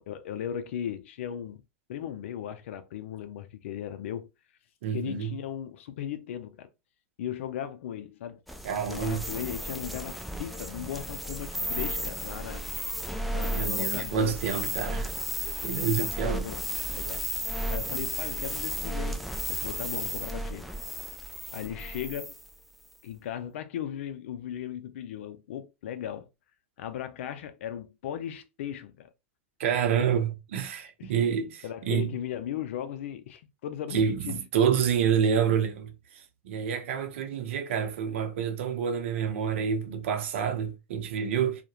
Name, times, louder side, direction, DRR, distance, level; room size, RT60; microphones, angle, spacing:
voice 1, 0.0-1.6 1.9-4.3 4.9-6.7 7.2-8.4 8.9-12.7 13.3-14.4 15.4-16.7 16.9-17.3 17.7-20.7 21.1-21.2 21.5-22.4 23.0-26.3 26.8-29.1 30.0-30.1 31.0-31.1 31.6-34.4, left 10 dB, 75° left, 0.4 m, -37 dB
voice 2, 4.8-5.4 8.6-9.2 13.5-15.1 15.6-16.5 29.6-32.1 33.9-41.6, right 7 dB, 70° right, 0.6 m, -28 dB
sound 1, 8.5-22.5, equal, ahead, 0.3 m, -34 dB
2.3 x 2.1 x 2.8 m
hypercardioid pair, 115°, 7 cm